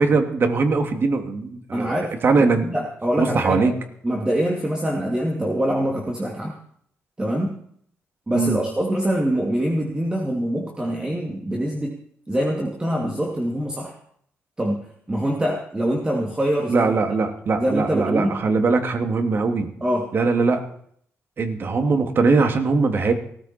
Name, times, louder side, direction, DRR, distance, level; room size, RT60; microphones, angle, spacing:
voice 1, 0.0-2.7 3.2-3.7 8.3-8.6 16.7-19.7 20.1-20.6 21.4-23.1, right 4 dB, 50° right, 6 dB, 2.5 m, -21 dB
voice 2, 1.7-3.7 4.0-6.6 7.2-7.6 8.3-12.0 12.3-13.9 14.6-14.8 15.1-16.9 17.6-18.4 19.8-20.1, equal, 20° right, 0 dB, 2.6 m, -24 dB
17.0 x 14.5 x 4.4 m, 0.63 s
cardioid pair, 95°, 5 cm